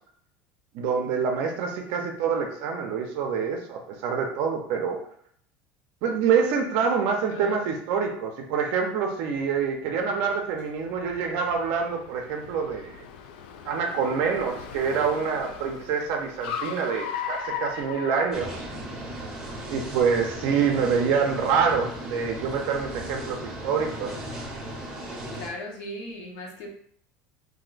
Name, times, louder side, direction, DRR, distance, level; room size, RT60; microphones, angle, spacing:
voice 1, 0.7-5.0 6.0-13.1 13.6-18.7 19.7-24.1, right 6 dB, 60° right, 2 dB, 0.5 m, -26 dB
voice 2, 7.3-7.7 25.3-26.7, left 1 dB, 60° left, 1 dB, 0.7 m, -38 dB
Car, 9.2-19.0, left 7 dB, 90° left, 0.3 m, -38 dB
sound 1, 18.3-25.5, right 1 dB, 15° right, 0.7 m, -37 dB
2.6 x 2.1 x 3.8 m, 0.64 s
cardioid pair, 160°, 5 cm